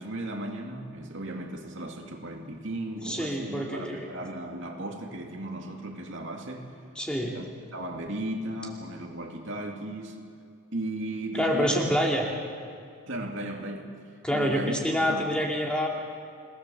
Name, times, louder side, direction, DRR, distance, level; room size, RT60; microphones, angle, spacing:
voice 1, 0.0-6.7 7.3-10.2 10.7-11.8 13.1-13.9 14.3-15.3, right 1 dB, 55° right, 1 dB, 2.8 m, -36 dB
voice 2, 3.0-4.1 7.0-7.4 11.3-12.3 14.2-15.9, equal, 5° left, -1 dB, 2.4 m, -27 dB
28.5 x 19.0 x 7.2 m, 2.3 s
head